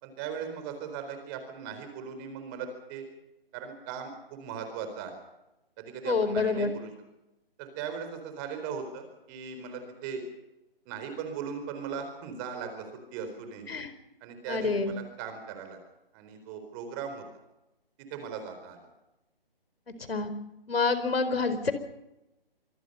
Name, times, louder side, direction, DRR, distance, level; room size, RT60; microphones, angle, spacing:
voice 1, 0.0-3.0 3.5-5.1 5.8-6.9 7.6-10.2 10.9-13.7 14.2-15.8 16.1-17.2 18.1-18.8, right 6 dB, 20° right, 7 dB, 4.3 m, -38 dB
voice 2, 6.0-6.7 13.7-13.9 14.5-14.9 20.1-20.3 20.7-21.7, left 4 dB, 75° left, 11 dB, 4.5 m, -27 dB
26.0 x 21.5 x 5.6 m, 0.94 s
hypercardioid pair, 155°, 30 cm